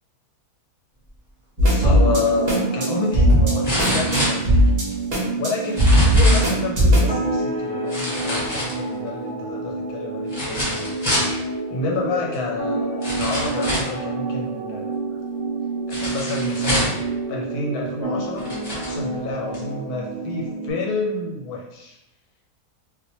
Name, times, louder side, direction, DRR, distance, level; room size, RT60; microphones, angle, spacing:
voice 1, 1.6-4.7 5.4-10.9 11.7-14.9 16.0-16.9 17.3-18.5 18.8-22.0, left 3 dB, 85° left, -2 dB, 1.2 m, -29 dB
sound 1, 1.6-20.7, right 1 dB, 75° right, 0.3 m, -23 dB
sound 2, 2.3-2.4 3.6-4.9 5.6-6.6 7.9-9.1 10.3-11.3 12.3-12.4 13.0-14.0 15.9-17.0 17.8-17.9 18.4-19.0 19.5-19.6, equal, 20° left, 0.8 m, -26 dB
2.4 x 2.1 x 2.8 m, 0.87 s
omnidirectional pair, 1.6 m